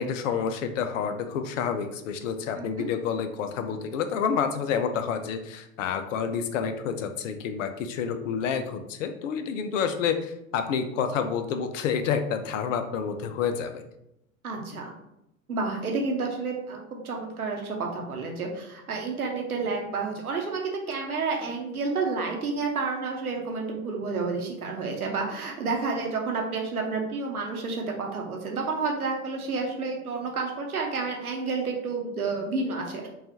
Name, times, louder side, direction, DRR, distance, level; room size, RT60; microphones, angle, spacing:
voice 1, 0.0-13.8, left 7 dB, 60° left, 8 dB, 0.6 m, -29 dB
voice 2, 2.6-2.9 14.4-14.9 15.5-33.1, right 4 dB, 85° right, 1 dB, 0.9 m, -30 dB
5.5 x 2.4 x 2.7 m, 0.83 s
figure-of-eight pair, 80°, 43 cm